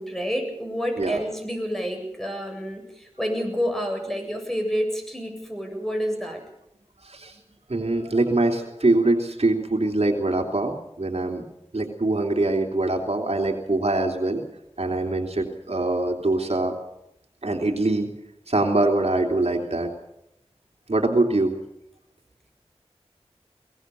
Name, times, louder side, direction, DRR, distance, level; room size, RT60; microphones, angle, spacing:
voice 1, 0.0-6.4, equal, 5° left, 3 dB, 7.8 m, -29 dB
voice 2, 7.0-7.4 7.7-11.4 11.7-14.4 14.8-16.7 17.4-18.1 18.5-19.9 20.9-21.5, right 2 dB, 70° right, 2 dB, 3.1 m, -23 dB
22.5 x 19.5 x 6.9 m, 0.82 s
wide cardioid pair, 40°, 11 cm